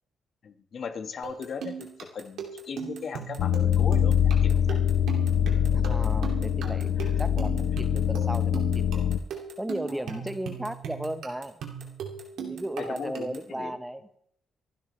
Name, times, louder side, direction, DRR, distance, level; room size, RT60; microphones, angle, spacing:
voice 1, 0.4-4.8 7.0-7.1 9.9-10.2 12.4-13.8, left 6 dB, 55° left, 7 dB, 1.6 m, -38 dB
sound 1, 1.2-13.5, right 7 dB, 75° right, 2.6 m, -39 dB
sound 2, 3.4-9.2, left 9 dB, 80° left, 0.8 m, -24 dB
voice 2, 5.7-9.1 9.6-11.6 12.5-14.0, right 1 dB, 10° right, 10 dB, 1.1 m, -35 dB
25.0 x 12.0 x 3.3 m, 0.67 s
cardioid pair, 90°, 0 cm